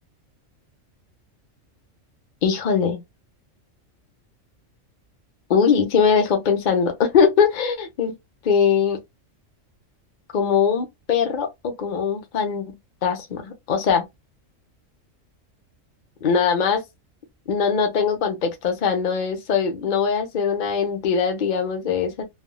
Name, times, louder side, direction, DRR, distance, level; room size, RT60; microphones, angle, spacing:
voice 1, 2.4-3.0 5.5-8.1 8.4-9.0 10.3-12.6 13.0-14.0 16.2-16.8 17.5-22.2, left 6 dB, 45° left, 0.8 m, -21 dB
3.3 x 2.2 x 2.2 m
omnidirectional pair, 1.4 m